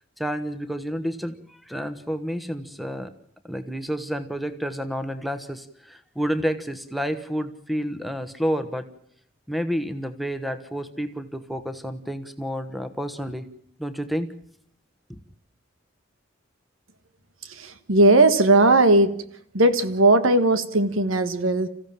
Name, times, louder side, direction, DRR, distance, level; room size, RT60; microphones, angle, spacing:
voice 1, 0.2-3.1 3.4-8.9 9.5-13.5 13.8-14.3 15.1-15.2, equal, ahead, 1.3 m, -30 dB
voice 2, 17.4-19.2 19.5-21.7, right 2 dB, 90° right, 1.6 m, -18 dB
27.5 x 15.5 x 7.4 m
head